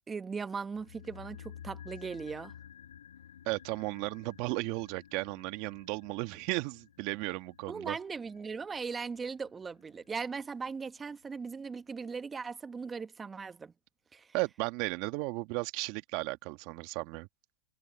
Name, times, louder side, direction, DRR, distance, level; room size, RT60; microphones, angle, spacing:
voice 1, 0.1-2.5 7.7-13.7 14.1-14.3, right 5 dB, 15° right, 1.2 m, -39 dB
sound 1, 0.7-11.0 11.2-11.3, left 9 dB, 90° left, 6.8 m, -53 dB
voice 2, 3.4-8.0 14.3-17.3, right 24 dB, 50° right, 1.6 m, -35 dB
hypercardioid pair, 120°, 0 cm